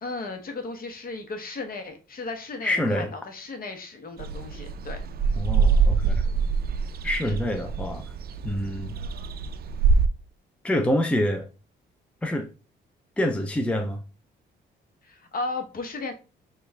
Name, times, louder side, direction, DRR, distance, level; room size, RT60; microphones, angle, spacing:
voice 1, 0.0-5.0 7.2-7.4 15.0-16.1, left 3 dB, 45° left, 0.9 m, -35 dB
voice 2, 2.6-3.1 5.4-6.2 7.0-8.0 8.4-9.0 10.6-11.5 12.2-12.5 13.2-14.0, left 1 dB, 5° left, 0.5 m, -26 dB
sound 1, 4.2-10.1, right 5 dB, 50° right, 0.4 m, -24 dB
4.4 x 2.4 x 3.3 m
cardioid pair, 90°, 20 cm